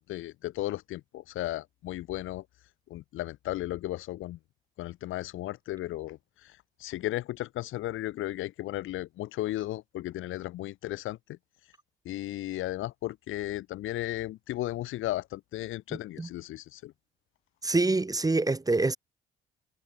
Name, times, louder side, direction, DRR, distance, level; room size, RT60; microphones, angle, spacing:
voice 1, 0.1-2.4 2.9-4.4 4.8-11.4 12.1-16.9, left 15 dB, 90° left, 5.2 m, -35 dB
voice 2, 17.6-19.0, right 3 dB, 20° right, 1.7 m, -25 dB
cardioid pair, 90°, 20 cm